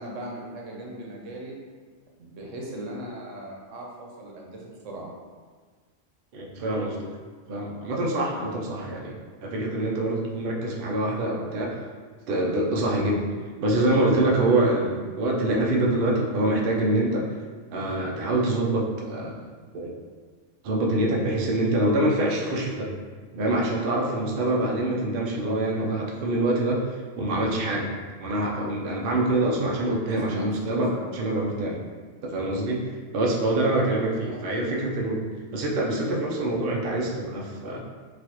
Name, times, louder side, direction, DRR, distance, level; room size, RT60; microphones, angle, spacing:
voice 1, 0.0-1.5 2.2-5.1 8.3-8.5 25.5-25.6 30.1-31.2 34.2-34.4, right 1 dB, 90° right, -2 dB, 1.1 m, -38 dB
voice 2, 6.3-7.0 7.5-9.2 9.4-11.8 12.3-13.3 13.6-17.3 17.7-19.4 19.7-20.0 20.6-22.9 23.3-27.9 28.2-31.8 32.2-35.2 35.5-37.8, right 1 dB, 55° right, -2 dB, 0.7 m, -25 dB
4.1 x 2.4 x 2.9 m, 1.5 s
omnidirectional pair, 1.3 m